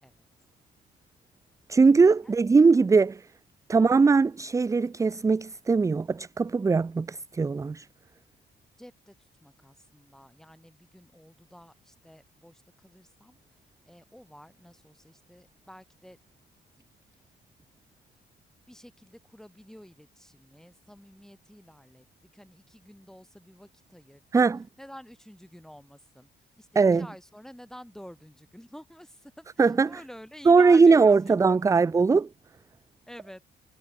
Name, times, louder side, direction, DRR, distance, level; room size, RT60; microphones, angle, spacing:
voice 1, 1.7-3.3 3.7-7.9 24.3-24.6 26.8-27.1 29.6-30.0 30.5-32.3, right 4 dB, 15° right, 0.4 m, -20 dB
voice 2, 8.8-13.6 13.9-16.2 16.5-16.9 18.7-24.5 24.8-31.9 33.1-33.4, equal, ahead, 3.8 m, -49 dB
cardioid pair, 90°, 20 cm